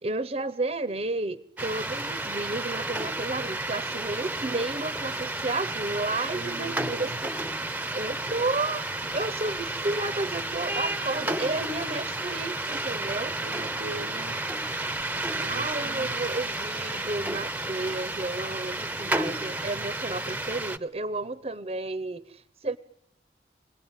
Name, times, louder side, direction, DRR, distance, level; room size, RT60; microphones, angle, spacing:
voice 1, 0.0-7.1 7.9-8.9 9.1-13.4 15.5-22.8, right 2 dB, 35° right, 15 dB, 0.9 m, -32 dB
sound 1, 1.6-20.8, right 2 dB, 10° right, 0.9 m, -32 dB
voice 2, 6.3-7.2 8.2-8.3 13.4-14.4 15.4-16.2, right 2 dB, 90° right, 7 dB, 1.1 m, -40 dB
27.5 x 19.0 x 9.0 m, 0.84 s
head